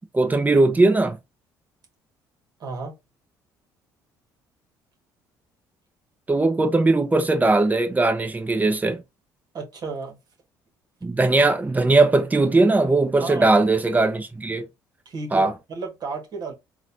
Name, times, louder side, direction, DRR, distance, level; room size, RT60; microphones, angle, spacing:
voice 1, 0.1-1.2 6.3-9.0 11.0-14.6 15.3-15.5, right 2 dB, 20° right, 0.9 m, -19 dB
voice 2, 2.6-2.9 9.5-10.2 13.2-13.6 15.0-16.5, right 4 dB, 50° right, 1.6 m, -33 dB
3.9 x 2.5 x 2.7 m
hypercardioid pair, 65°, 9 cm